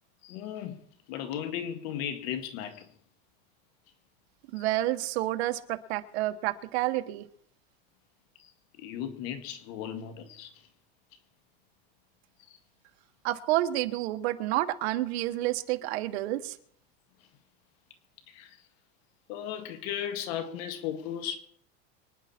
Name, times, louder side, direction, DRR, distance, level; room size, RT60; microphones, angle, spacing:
voice 1, 0.2-0.8 1.1-2.9 4.6-4.7 8.4-8.5 8.8-10.5 12.5-12.6 18.3-18.6 19.3-21.4, left 9 dB, 65° left, 2.0 m, -36 dB
voice 2, 4.5-7.3 13.2-16.6, right 15 dB, 80° right, 1.3 m, -29 dB
25.0 x 10.5 x 4.4 m
cardioid pair, 160°, 32 cm